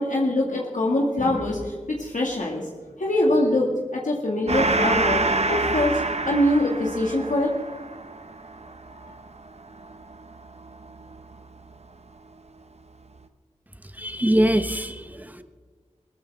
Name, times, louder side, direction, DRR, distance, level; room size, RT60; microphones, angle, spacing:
voice 1, 0.0-2.6 3.0-7.5, left 1 dB, 85° left, -2 dB, 2.1 m, -23 dB
Gong, 4.5-11.4, right 3 dB, 60° right, 0.9 m, -27 dB
voice 2, 14.0-15.4, right 1 dB, 15° right, 10 dB, 1.0 m, -23 dB
20.0 x 14.5 x 3.6 m, 1.4 s
wide cardioid pair, 60°, 13 cm